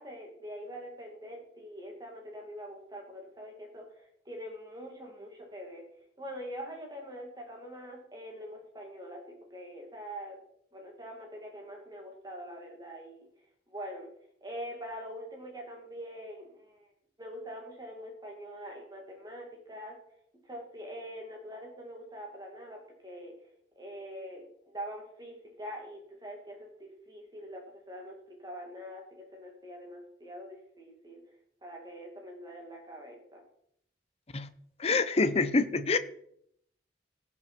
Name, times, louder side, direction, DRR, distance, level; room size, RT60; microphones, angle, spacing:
voice 1, 0.0-5.8 6.2-10.4 10.7-13.3 13.7-14.1 14.4-16.9 17.2-20.0 20.4-23.3 23.8-31.2 31.6-33.4, equal, 20° right, 1 dB, 2.3 m, -44 dB
voice 2, 34.8-36.0, left 3 dB, 35° left, 12 dB, 0.7 m, -26 dB
17.0 x 6.2 x 4.5 m, 0.70 s
head